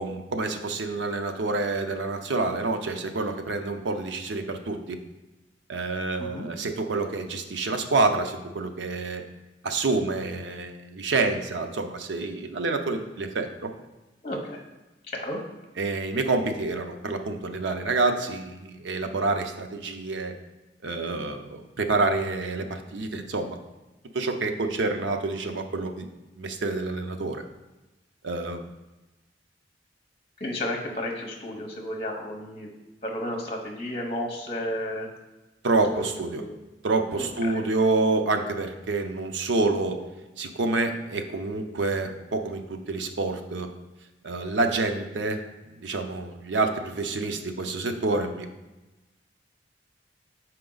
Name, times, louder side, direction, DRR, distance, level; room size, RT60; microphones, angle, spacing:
voice 1, 0.0-5.0 5.7-9.2 9.6-13.7 15.8-20.3 20.8-23.6 24.1-26.1 26.4-27.4 28.2-28.6 35.6-36.4 36.8-40.0 40.4-43.7 44.2-45.4 45.7-48.5, right 3 dB, 80° right, 6 dB, 0.6 m, -27 dB
voice 2, 14.2-14.6 15.1-15.4 30.4-32.7 33.0-35.1 35.9-36.5 37.1-37.6, left 1 dB, 35° left, 1 dB, 0.9 m, -33 dB
6.0 x 4.5 x 3.9 m, 1.1 s
head